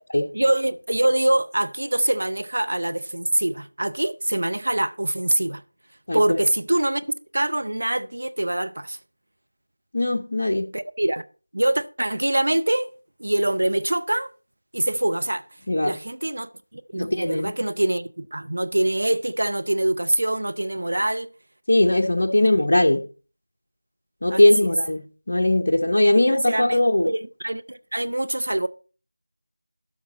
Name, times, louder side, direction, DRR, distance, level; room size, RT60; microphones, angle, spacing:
voice 1, 0.3-5.6 6.1-9.0 10.7-11.2 11.5-12.9 13.2-14.3 14.7-15.4 15.8-21.3 22.4-22.5 24.3-24.4 26.3-28.7, right 1 dB, 60° right, 0.6 m, -24 dB
voice 2, 9.9-10.7 15.7-16.0 16.9-17.5 21.7-23.0 24.2-27.1, left 1 dB, 50° left, 0.8 m, -20 dB
12.0 x 5.7 x 4.1 m
figure-of-eight pair, 170°, 0 cm